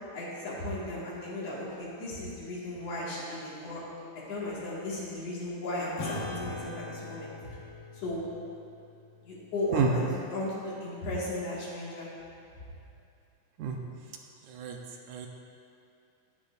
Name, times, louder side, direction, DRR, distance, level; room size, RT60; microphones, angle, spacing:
voice 1, 0.1-3.8 4.3-7.3 7.9-8.2 9.3-12.1, left 2 dB, 50° left, -7 dB, 2.8 m, -35 dB
Acoustic guitar / Strum, 6.0-10.8, left 3 dB, 85° left, 2.8 m, -42 dB
voice 2, 14.5-14.8 15.1-15.3, right 5 dB, 75° right, 2 dB, 1.8 m, -29 dB
15.5 x 7.9 x 2.5 m, 2.5 s
omnidirectional pair, 4.0 m